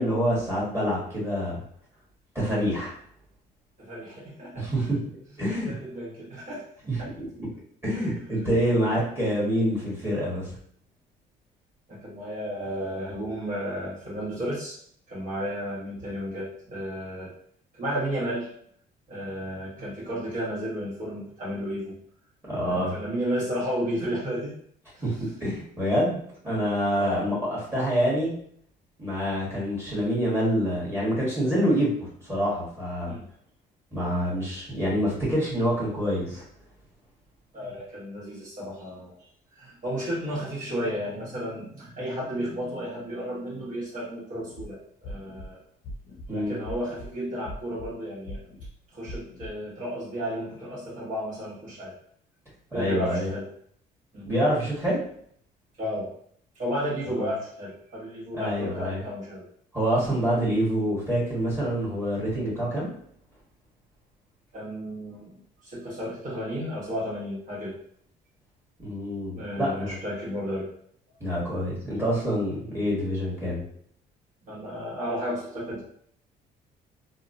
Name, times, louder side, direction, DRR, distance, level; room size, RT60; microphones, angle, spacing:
voice 1, 0.0-1.6 2.3-2.9 4.5-5.0 5.4-5.7 6.9-7.5 7.8-10.5 22.5-22.9 25.0-28.3 29.0-33.1 33.9-36.4 46.3-46.5 52.7-53.3 54.2-55.0 57.0-57.3 58.3-59.0 59.7-62.9 68.8-70.0 71.2-73.6, equal, 15° right, -7 dB, 1.3 m, -26 dB
voice 2, 3.8-5.0 5.4-6.6 7.0-7.1 7.9-8.9 11.9-14.8 15.1-17.3 17.7-18.5 19.1-21.9 22.6-24.5 24.9-25.2 27.0-27.3 33.0-33.2 37.5-39.1 39.6-45.6 46.3-48.4 48.9-51.9 52.7-53.5 54.1-54.3 55.8-56.1 56.6-59.4 60.0-60.1 64.5-65.3 65.6-67.8 69.4-70.7 74.5-75.8, equal, 50° right, -6 dB, 1.2 m, -33 dB
sound 1, 44.4-44.7 45.0-45.5 45.8-46.3 46.6-47.1 47.5-47.9 48.3-48.7 49.1-49.5, left 1 dB, 65° left, 0.7 m, -39 dB
2.9 x 2.1 x 2.6 m, 0.63 s
cardioid pair, 110°, 17 cm